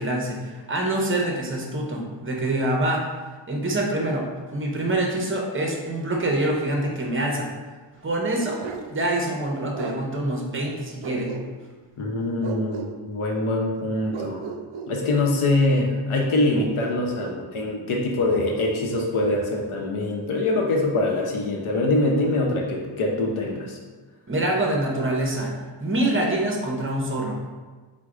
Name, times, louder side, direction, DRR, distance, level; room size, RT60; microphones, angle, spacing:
voice 1, 0.0-3.1 3.5-7.5 8.0-8.6 8.9-11.3 24.3-25.5 25.8-27.4, right 1 dB, 25° right, 0 dB, 0.6 m, -25 dB
Bark, 8.6-8.9 9.7-10.0 11.0-11.7 12.4-12.9 14.1-15.3 16.5-17.4 18.3-19.1, right 6 dB, 75° right, 0.5 m, -35 dB
voice 2, 12.0-14.5 14.9-23.8, left 2 dB, 80° left, 0 dB, 0.8 m, -24 dB
4.7 x 2.2 x 3.6 m, 1.4 s
wide cardioid pair, 140°, 48 cm